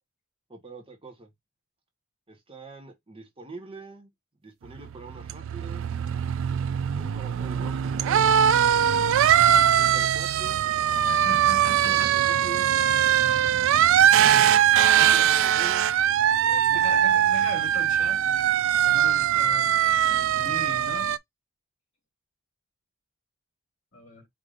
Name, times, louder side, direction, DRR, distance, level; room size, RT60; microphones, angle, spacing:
voice 1, 0.5-1.3 2.3-4.1 4.4-5.9 6.9-8.3 9.7-10.6 11.7-12.7 14.9-15.9 16.7-16.8, right 3 dB, 25° right, 1.2 m, -43 dB
sound 1, 4.7-21.2, right 9 dB, 65° right, 0.3 m, -21 dB
voice 2, 11.1-12.1 13.8-14.0 14.6-15.3 15.9-18.2 18.7-21.1 23.9-24.3, equal, 60° left, 2.9 m, -40 dB
4.9 x 2.6 x 3.8 m
head